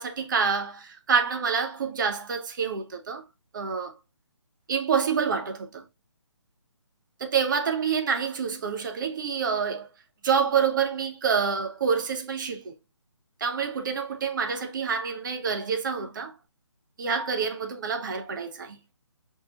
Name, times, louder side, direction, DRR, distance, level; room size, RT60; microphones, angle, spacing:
voice 1, 0.0-3.2 3.5-3.9 4.7-5.8 7.2-9.9 10.2-12.7 13.4-16.3 17.0-18.8, right 6 dB, 40° right, 0.7 m, -27 dB
4.5 x 3.2 x 2.8 m
figure-of-eight pair, 150°, 16 cm